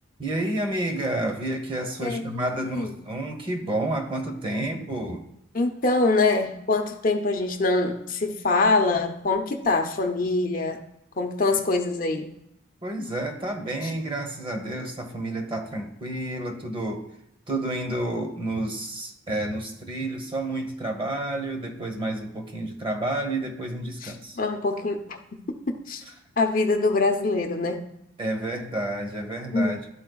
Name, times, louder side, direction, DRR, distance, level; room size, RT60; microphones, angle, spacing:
voice 1, 0.2-5.2 11.5-11.6 12.8-17.1 17.5-24.4 28.2-29.8, right 1 dB, 25° right, 0.9 m, -30 dB
voice 2, 2.0-2.9 5.5-10.8 11.2-12.3 13.8-13.9 24.0-25.2 25.7-26.0 26.4-27.8 29.5-29.8, left 3 dB, 45° left, 0.6 m, -24 dB
12.5 x 4.3 x 2.3 m
head